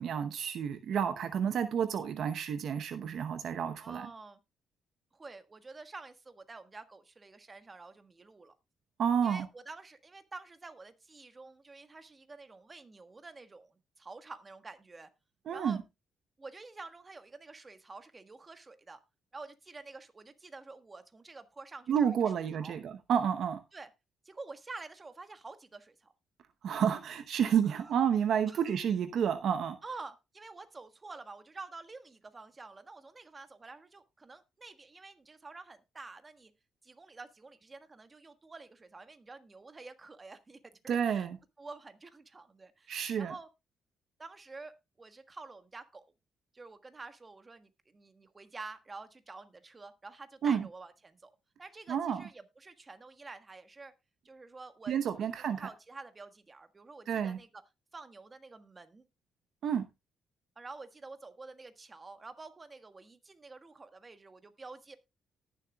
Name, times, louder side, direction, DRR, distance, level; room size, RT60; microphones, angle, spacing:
voice 1, 0.0-4.1 9.0-9.5 15.5-15.8 21.9-23.6 26.6-29.8 40.9-41.4 42.9-43.3 50.4-50.7 51.9-52.2 54.9-55.7 57.1-57.4 59.6-59.9, right 8 dB, 65° right, 0.8 m, -30 dB
voice 2, 3.8-4.4 5.1-8.5 9.2-15.1 15.5-15.8 16.4-19.0 19.3-22.8 23.7-23.9 24.2-26.1 27.6-27.9 28.4-28.7 29.8-36.5 36.8-41.3 41.6-43.5 44.2-46.0 46.5-51.3 51.6-53.9 54.2-57.6 57.9-59.1 60.6-65.0, right 3 dB, 25° right, 1.4 m, -49 dB
18.5 x 7.1 x 2.3 m
cardioid pair, 90°, 0 cm